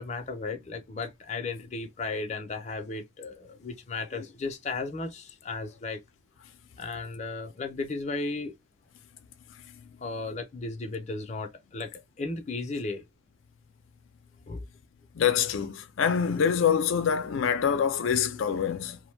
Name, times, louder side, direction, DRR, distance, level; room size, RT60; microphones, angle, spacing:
voice 1, 0.0-6.0 6.8-8.5 10.0-13.0 14.5-14.6, left 3 dB, 35° left, 0.5 m, -35 dB
voice 2, 15.1-19.0, left 7 dB, 90° left, 0.4 m, -25 dB
2.6 x 2.1 x 3.0 m
head